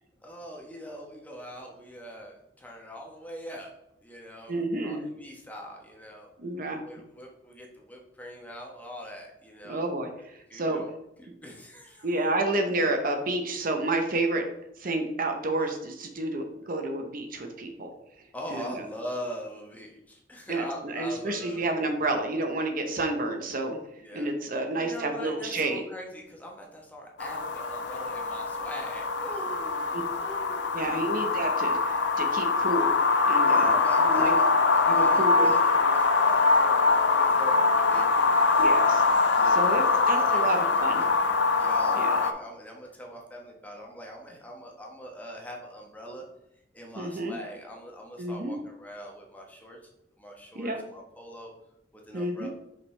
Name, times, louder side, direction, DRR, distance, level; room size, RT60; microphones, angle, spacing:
voice 1, 0.2-3.7 4.0-6.3 6.8-9.9 10.2-10.9 11.2-12.1 15.6-15.7 18.3-21.9 24.0-24.3 24.7-31.1 33.5-38.7 39.3-41.3 41.6-46.2 46.7-49.8 50.2-51.5 52.1-52.5, equal, 10° left, 0 dB, 1.1 m, -42 dB
voice 2, 4.5-5.0 6.4-6.8 9.6-10.8 12.0-14.5 14.8-17.9 18.5-18.7 20.5-23.8 24.1-25.8 29.9-30.0 30.7-32.9 33.2-34.3 34.9-35.5 38.6-41.0 41.9-42.2 47.0-47.3 48.2-48.6 50.5-50.8 52.1-52.5, right 2 dB, 50° right, 5 dB, 0.8 m, -30 dB
sound 1, 27.2-42.3, left 4 dB, 70° left, 0.5 m, -23 dB
5.5 x 5.3 x 3.2 m, 0.80 s
head